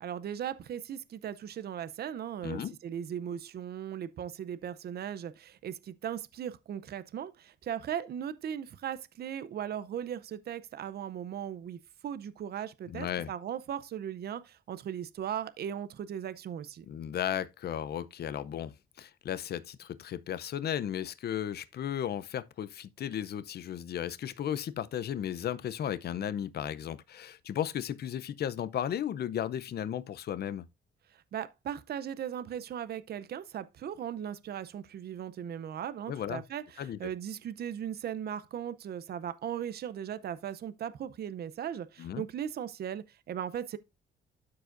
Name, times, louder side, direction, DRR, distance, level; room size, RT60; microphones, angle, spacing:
voice 1, 0.0-16.9 31.1-43.8, right 9 dB, 55° right, 0.6 m, -38 dB
voice 2, 2.4-2.8 12.9-13.3 16.9-30.6 36.1-36.4 36.8-37.1 42.0-42.2, left 10 dB, 55° left, 0.6 m, -35 dB
12.5 x 4.8 x 2.5 m
cardioid pair, 90°, 20 cm